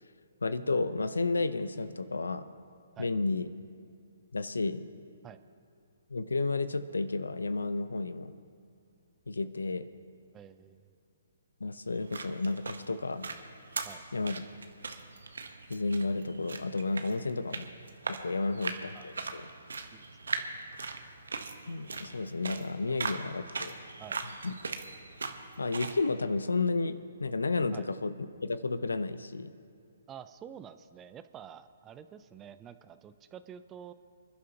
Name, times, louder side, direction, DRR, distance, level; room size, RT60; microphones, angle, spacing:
voice 1, 0.4-2.4 3.0-3.5 4.3-4.9 6.1-8.3 9.3-9.9 11.6-13.3 14.1-14.4 15.7-17.7 18.1-19.5 21.7-23.7 24.4-24.5 25.6-28.2 28.4-29.5, left 3 dB, 85° left, 13 dB, 0.7 m, -32 dB
voice 2, 10.3-11.0 13.8-14.0 18.9-19.1 19.9-20.3 22.9-23.0 24.0-24.2 27.7-27.8 30.1-33.9, right 9 dB, 20° right, 12 dB, 0.5 m, -49 dB
sound 1, 11.9-26.0, right 4 dB, 80° right, 1.1 m, -40 dB
26.0 x 11.5 x 2.9 m, 2.3 s
hypercardioid pair, 140°, 0 cm